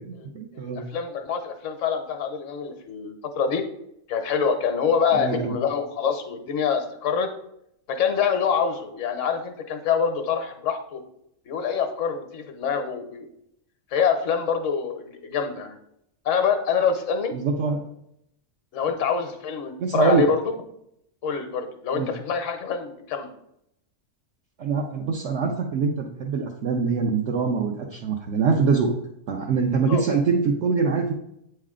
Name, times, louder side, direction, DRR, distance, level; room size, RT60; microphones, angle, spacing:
voice 1, 0.0-0.8 5.1-5.5 17.3-17.8 19.8-20.3 21.9-22.1 24.6-28.9 29.3-31.1, right 5 dB, 60° right, 0 dB, 0.9 m, -24 dB
voice 2, 0.5-3.7 4.1-7.3 7.9-11.0 11.5-13.3 13.9-15.8 16.2-17.4 18.7-20.5 21.2-23.3 29.9-30.0, left 6 dB, 65° left, 6 dB, 1.1 m, -25 dB
8.2 x 3.2 x 3.6 m, 0.76 s
omnidirectional pair, 1.4 m